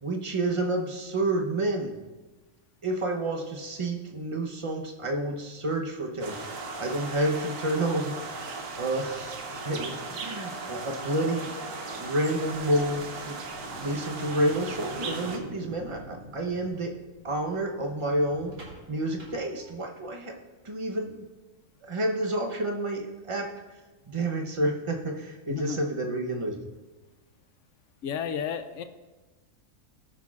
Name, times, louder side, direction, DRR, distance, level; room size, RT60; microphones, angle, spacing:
voice 1, 0.0-1.9 2.8-6.4 6.8-11.6 12.0-13.4 13.8-17.0 17.2-18.5 18.9-20.4 20.6-21.2 21.8-23.5 24.1-26.6, right 1 dB, 25° right, 2 dB, 0.8 m, -29 dB
sound 1, 6.2-15.4, right 3 dB, 80° right, 1.4 m, -37 dB
sound 2, 12.5-20.1, equal, 60° right, 2.2 m, -47 dB
voice 2, 25.5-25.8 28.0-28.8, left 8 dB, 65° left, 9 dB, 0.8 m, -32 dB
18.0 x 6.5 x 2.4 m, 1.2 s
omnidirectional pair, 1.5 m